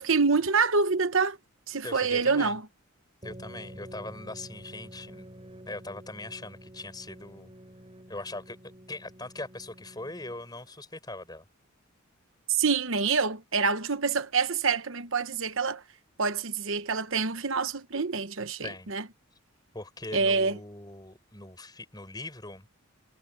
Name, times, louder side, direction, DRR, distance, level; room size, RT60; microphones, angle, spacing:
voice 1, 0.0-1.4 1.7-2.6 12.5-15.8 16.2-19.0 20.1-20.6, right 4 dB, 60° right, 1.1 m, -26 dB
voice 2, 1.8-2.6 3.2-5.3 5.7-7.5 8.1-8.6 8.9-11.5 18.6-18.9 19.7-22.7, left 2 dB, 20° left, 5.8 m, -41 dB
sound 1, 3.2-10.7, equal, 25° right, 5.8 m, -48 dB
head